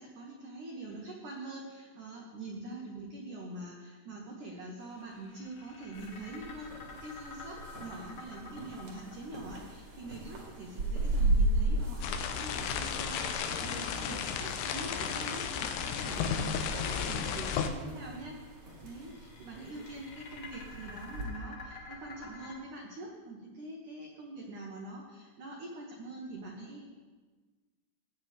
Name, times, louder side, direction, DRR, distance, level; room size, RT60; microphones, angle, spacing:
voice 1, 0.0-26.8, right 2 dB, 80° right, -1 dB, 1.8 m, -44 dB
sound 1, 4.8-11.0 13.8-15.4 15.9-17.3 18.5-22.5, left 3 dB, 50° left, 2.7 m, -50 dB
sound 2, 5.9-21.2, right 1 dB, 50° right, 1.8 m, -37 dB
sound 3, 12.0-17.7, left 7 dB, 80° left, 2.4 m, -34 dB
16.0 x 9.2 x 3.3 m, 1.4 s
omnidirectional pair, 5.1 m